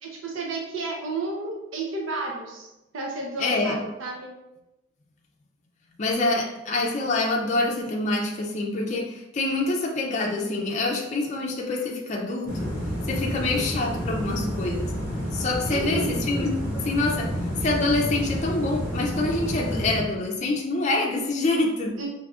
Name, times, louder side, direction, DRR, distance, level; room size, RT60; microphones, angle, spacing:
voice 1, 0.0-4.3 15.7-16.1 22.0-22.1, right 2 dB, 85° right, 0 dB, 0.6 m, -32 dB
voice 2, 3.4-3.9 6.0-12.7 13.1-14.9 15.3-17.3 17.6-21.9, left 2 dB, 35° left, -1 dB, 0.4 m, -26 dB
sound 1, 12.5-20.0, equal, 10° right, 1.0 m, -29 dB
4.7 x 2.6 x 2.4 m, 0.99 s
head